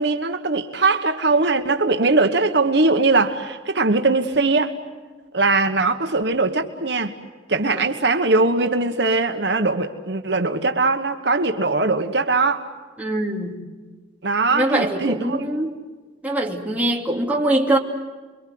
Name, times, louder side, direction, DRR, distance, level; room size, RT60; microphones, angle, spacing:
voice 1, 0.0-4.7 5.3-7.1 7.5-12.6 14.2-15.5, right 3 dB, 65° right, 6 dB, 1.3 m, -20 dB
voice 2, 13.0-13.6 14.5-15.7 16.2-17.8, right 1 dB, 10° right, -2 dB, 2.6 m, -22 dB
30.0 x 23.5 x 7.8 m, 1.4 s
head